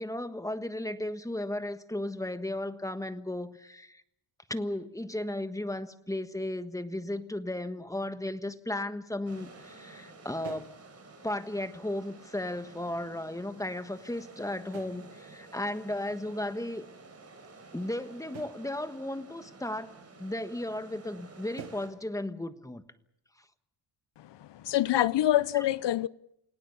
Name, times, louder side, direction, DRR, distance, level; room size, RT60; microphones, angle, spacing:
voice 1, 0.0-4.0 4.5-10.7 11.2-16.8 17.7-19.9 20.2-22.8 25.5-25.6, left 1 dB, 5° left, 1.3 m, -35 dB
sound 1, 9.0-9.2 9.4-9.6 10.0-10.1 10.4-10.9 11.3-11.4 12.2-12.6 13.3-14.3 14.7-15.2 15.8-16.0 16.7-16.8 18.3-18.7 19.5-19.6 20.1-20.2 20.6-20.7 21.0-21.3 21.6-22.0, right 10 dB, 75° right, 1.8 m, -49 dB
sound 2, 9.3-21.9, right 3 dB, 30° right, 7.1 m, -52 dB
voice 2, 24.2-26.1, left 13 dB, 60° left, 0.8 m, -26 dB
29.0 x 18.0 x 7.0 m
cardioid pair, 115°, 48 cm